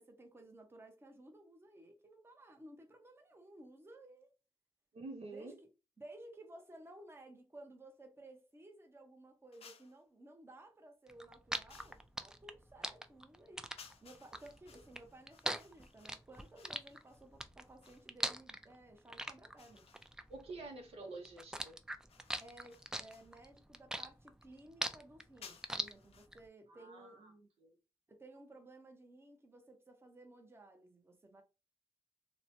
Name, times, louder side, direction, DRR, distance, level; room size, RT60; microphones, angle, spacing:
voice 1, 0.0-4.3 5.3-5.7 6.0-13.7 14.0-19.9 22.4-27.5 28.1-31.4, right 1 dB, 25° right, 0.7 m, -56 dB
voice 2, 4.9-5.6 20.3-21.8 26.7-27.3 27.6-27.8, right 3 dB, 80° right, 0.7 m, -48 dB
sound 1, 9.5-10.0 11.7-12.1 13.8-18.1 19.6-20.4 22.1-23.4 25.4-26.3, left 6 dB, 80° left, 0.5 m, -60 dB
sound 2, 11.1-20.9 21.2-26.4, right 1 dB, 5° right, 0.3 m, -41 dB
2.9 x 2.1 x 2.7 m
cardioid pair, 65°, 10 cm